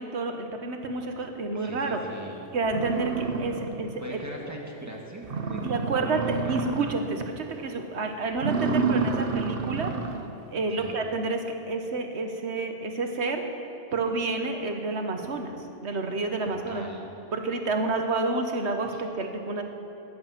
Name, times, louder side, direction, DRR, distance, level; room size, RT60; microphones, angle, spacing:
voice 1, 0.0-2.0 2.5-4.2 5.6-9.9 10.5-13.4 13.9-16.8 17.3-19.6, right 3 dB, 70° right, 5 dB, 1.5 m, -29 dB
voice 2, 1.5-2.5 4.0-6.5 10.8-11.0 16.7-17.0 18.9-19.0, right 1 dB, 15° right, -1 dB, 1.9 m, -40 dB
sound 1, 2.2-2.3 2.7-4.1 4.4-4.5 4.9-5.0 5.2-7.2 7.5-7.8 8.3-10.3, right 4 dB, 55° right, 1.0 m, -29 dB
20.5 x 8.6 x 6.0 m, 3.0 s
omnidirectional pair, 1.2 m